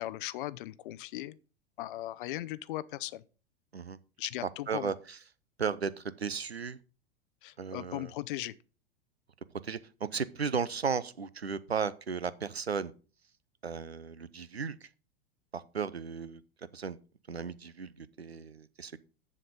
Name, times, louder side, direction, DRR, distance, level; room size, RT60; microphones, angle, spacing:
voice 1, 0.0-1.4 1.8-3.2 4.2-4.9 7.4-8.5, left 15 dB, 55° left, 0.5 m, -38 dB
voice 2, 4.7-5.2 5.6-6.8 7.6-8.1 9.6-12.9 13.6-14.9 15.5-17.0 17.3-19.0, right 6 dB, 90° right, 0.6 m, -35 dB
7.4 x 6.5 x 5.2 m
figure-of-eight pair, 90°, 31 cm